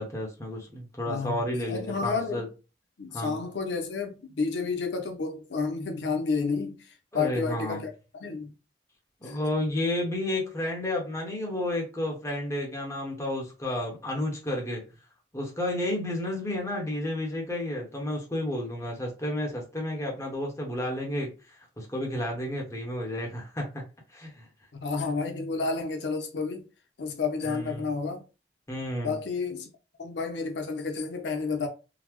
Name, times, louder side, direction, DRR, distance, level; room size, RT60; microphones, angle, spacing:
voice 1, 0.0-2.5 3.1-3.4 7.1-7.8 9.2-14.9 15.3-21.3 21.8-23.8 24.1-24.5 27.4-27.9 28.7-29.2, left 1 dB, 15° left, 1.0 m, -31 dB
voice 2, 1.1-1.4 1.7-2.5 3.0-8.5 9.2-9.4 24.7-26.6 27.0-28.2 29.0-29.7 30.0-31.7, left 4 dB, 85° left, 0.6 m, -31 dB
3.9 x 2.0 x 2.9 m
head